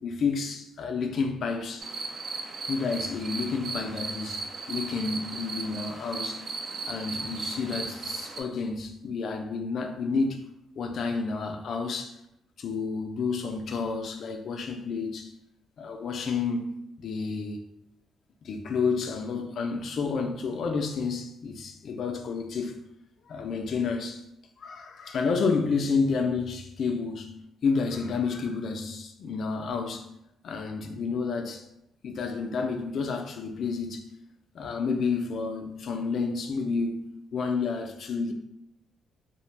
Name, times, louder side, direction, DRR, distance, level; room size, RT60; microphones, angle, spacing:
voice 1, 0.0-1.9 2.7-6.4 6.9-10.4 10.8-12.2 12.6-15.3 15.8-17.6 18.4-22.8 23.3-24.2 24.6-30.1 30.4-31.6 32.0-34.0 34.5-37.1 37.3-38.3, left 4 dB, 60° left, 0.3 m, -30 dB
sound 1, 1.8-8.4, right 3 dB, 50° right, 0.4 m, -36 dB
2.4 x 2.0 x 3.1 m
cardioid pair, 90°, 0 cm